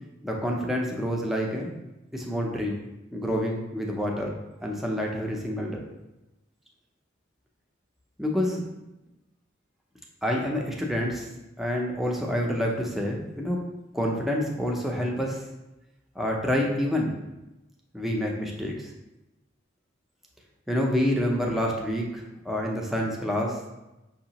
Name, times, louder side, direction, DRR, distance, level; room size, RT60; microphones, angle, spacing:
voice 1, 0.2-1.7 2.1-2.8 3.1-4.3 4.6-5.8 8.2-8.6 10.2-11.3 11.6-13.6 13.9-15.4 16.2-17.2 17.9-18.9 20.7-23.6, equal, ahead, -1 dB, 0.5 m, -27 dB
5.8 x 2.8 x 2.8 m, 0.99 s
head